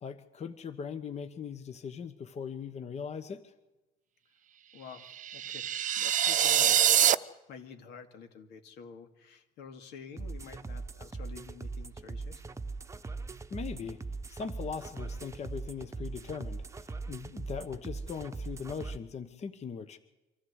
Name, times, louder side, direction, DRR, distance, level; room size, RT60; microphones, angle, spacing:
voice 1, 0.0-3.5 13.5-14.0 14.3-16.6 17.1-20.0, left 6 dB, 40° left, 9 dB, 1.2 m, -40 dB
voice 2, 4.7-7.0 7.5-12.4, left 6 dB, 85° left, 5 dB, 2.3 m, -49 dB
sound 1, 5.1-7.1, right 10 dB, 50° right, 0.7 m, -25 dB
sound 2, 10.2-19.0, right 3 dB, 15° right, 0.9 m, -40 dB
25.0 x 14.5 x 8.1 m, 1.1 s
cardioid pair, 110°, 17 cm